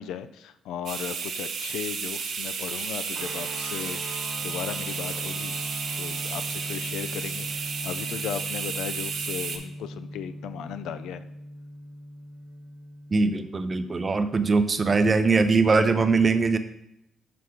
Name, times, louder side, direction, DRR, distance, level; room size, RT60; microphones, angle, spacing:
voice 1, 0.0-5.6 6.0-11.2, left 9 dB, 85° left, 11 dB, 0.3 m, -36 dB
sound 1, 0.9-9.6, right 5 dB, 70° right, 0.7 m, -32 dB
sound 2, 3.1-13.5, equal, 90° right, 1.1 m, -39 dB
voice 2, 13.1-16.6, right 4 dB, 35° right, 10 dB, 0.4 m, -21 dB
5.8 x 4.8 x 3.6 m, 0.81 s
cardioid pair, 90°, 0 cm